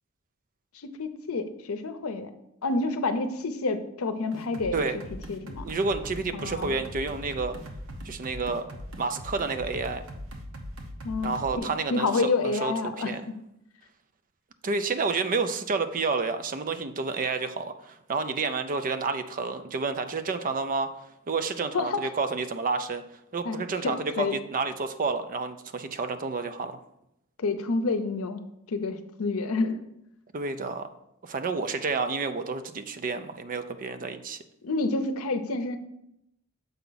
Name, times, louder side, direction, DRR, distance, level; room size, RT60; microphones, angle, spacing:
voice 1, 0.7-2.3 2.6-4.8 5.3-5.6 6.3-6.8 11.0-13.1 21.7-22.0 23.4-24.4 27.4-28.4 28.7-29.8 34.6-35.8, left 3 dB, 85° left, 9 dB, 0.6 m, -29 dB
sound 1, 4.3-11.6, equal, 75° right, 0.9 m, -40 dB
voice 2, 5.6-7.6 8.0-8.6 9.0-10.0 11.2-13.2 14.6-20.9 21.3-23.0 23.3-26.8 30.3-30.9 31.2-34.4, right 4 dB, 40° right, 9 dB, 0.5 m, -30 dB
6.8 x 4.7 x 3.9 m, 0.80 s
head